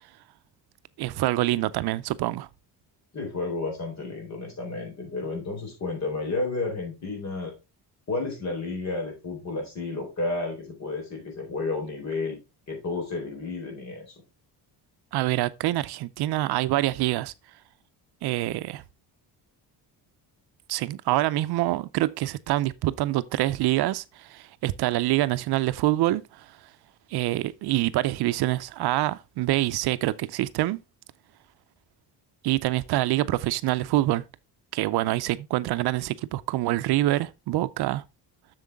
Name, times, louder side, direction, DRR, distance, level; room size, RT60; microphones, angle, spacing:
voice 1, 1.0-2.5 15.1-17.3 18.2-18.8 20.7-26.6 27.1-30.8 32.4-34.2 34.7-38.0, right 16 dB, 70° right, 0.5 m, -26 dB
voice 2, 3.1-7.5 8.1-12.4 12.7-14.1, left 3 dB, 40° left, 4.0 m, -31 dB
7.6 x 6.6 x 3.5 m
cardioid pair, 165°, 40 cm